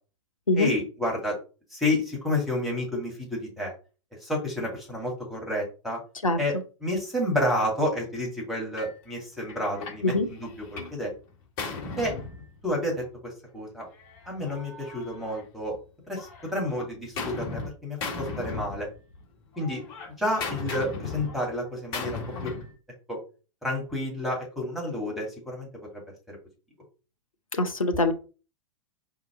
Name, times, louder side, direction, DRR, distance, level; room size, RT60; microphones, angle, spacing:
voice 1, 0.6-1.4 1.7-3.7 4.2-6.0 6.4-6.6 6.8-11.1 12.0-12.1 12.6-13.9 14.3-15.8 16.1-18.9 19.6-19.8 20.2-22.5 23.1-23.2 23.6-26.0 26.3-26.4, left 1 dB, ahead, -2 dB, 2.0 m, -30 dB
Gunshot gunfire, 8.8-9.0 9.5-11.0 11.3-13.0 13.9-15.8 16.1-17.7 18.0-19.2 19.5-22.7, left 4 dB, 45° left, 1.9 m, -37 dB
voice 2, 27.5-28.1, left 2 dB, 85° left, 7 dB, 0.8 m, -23 dB
4.7 x 2.9 x 3.7 m, 0.35 s
figure-of-eight pair, 100°, 17 cm